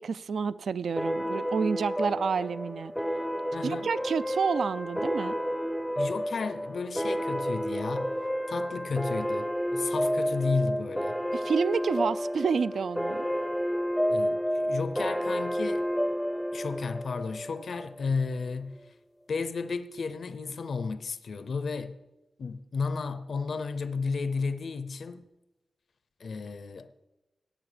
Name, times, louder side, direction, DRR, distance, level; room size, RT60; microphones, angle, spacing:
voice 1, 0.0-2.9 3.6-5.3 11.3-13.2, right 5 dB, 75° right, 0.4 m, -29 dB
sound 1, 1.0-18.1, equal, ahead, 0.5 m, -30 dB
voice 2, 3.5-3.9 6.0-8.1 8.5-11.2 14.1-15.9 16.5-18.9 19.3-22.0 22.4-25.3 26.2-27.1, left 4 dB, 65° left, 0.5 m, -33 dB
18.0 x 7.0 x 5.0 m
wide cardioid pair, 110°, 0 cm